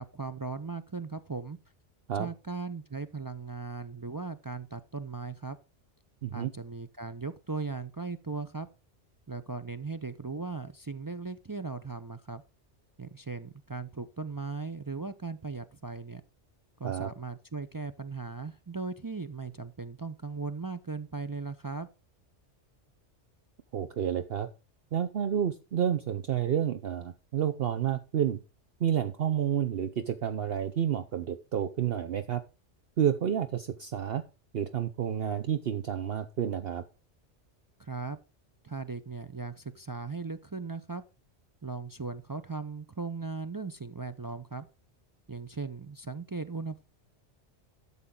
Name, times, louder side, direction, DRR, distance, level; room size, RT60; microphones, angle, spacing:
voice 1, 0.0-1.6 2.2-5.6 6.3-8.7 9.3-12.4 13.0-16.2 16.8-21.9 37.8-38.2 38.6-41.0 41.6-44.7 45.3-46.8, right 4 dB, 35° right, 0.3 m, -38 dB
voice 2, 23.7-24.5 24.9-28.4 28.8-32.4 33.0-34.2 34.5-36.8, right 9 dB, 60° right, 0.9 m, -30 dB
12.5 x 7.3 x 3.8 m
omnidirectional pair, 1.2 m